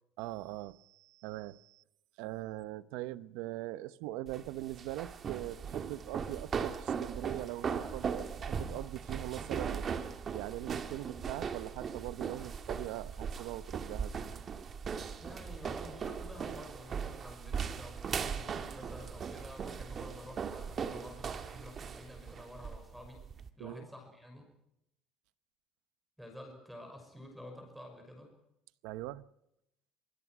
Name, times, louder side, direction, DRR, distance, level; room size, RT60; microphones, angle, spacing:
voice 1, 0.2-1.8 2.2-10.0 10.3-14.1 23.6-23.9 28.8-29.3, right 16 dB, 80° right, 16 dB, 0.9 m, -41 dB
sound 1, 4.3-23.5, right 6 dB, 30° right, 1.7 m, -39 dB
voice 2, 15.2-23.2 23.6-24.5 26.2-28.3, left 1 dB, ahead, 4 dB, 6.0 m, -50 dB
25.5 x 20.5 x 6.2 m, 0.81 s
cardioid pair, 150°, 0 cm